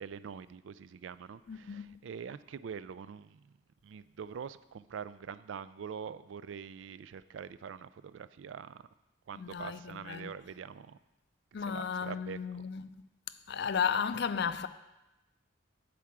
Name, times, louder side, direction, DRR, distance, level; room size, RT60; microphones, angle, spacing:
voice 1, 0.0-3.5 3.8-8.8 9.3-11.0 11.6-12.4, right 7 dB, 75° right, 0.3 m, -44 dB
voice 2, 1.5-2.0 9.3-10.3 11.5-12.9 13.5-14.7, left 6 dB, 55° left, 0.4 m, -34 dB
8.5 x 4.6 x 7.3 m
head